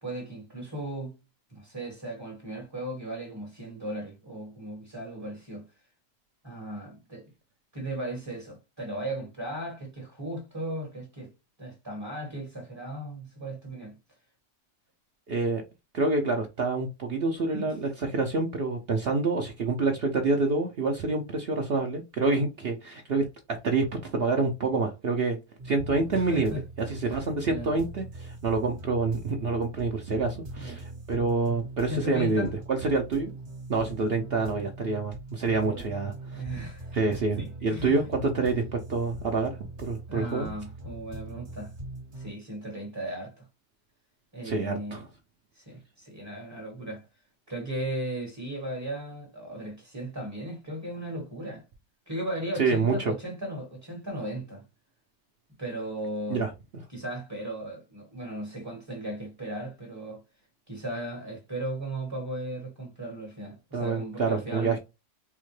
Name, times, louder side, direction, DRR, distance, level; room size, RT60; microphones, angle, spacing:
voice 1, 0.0-1.1 1.5-5.6 6.4-7.3 7.7-11.3 11.6-14.0 17.5-17.7 26.1-26.6 27.0-27.7 30.6-30.8 31.9-32.5 35.7-35.8 36.3-37.0 37.3-38.0 40.1-41.7 42.1-43.4 44.3-45.0 45.5-47.1 47.5-51.6 52.1-54.6 55.6-56.5 56.9-60.2 60.7-64.8, right 1 dB, 15° right, 1.2 m, -36 dB
voice 2, 15.3-15.6 15.9-25.4 25.6-26.5 26.8-33.3 33.7-36.4 36.9-40.5 44.4-45.1 52.6-53.1 56.3-56.5 63.7-64.8, right 3 dB, 70° right, 0.5 m, -27 dB
sound 1, 25.6-42.3, right 1 dB, 45° right, 1.4 m, -42 dB
4.5 x 2.1 x 3.1 m
omnidirectional pair, 1.7 m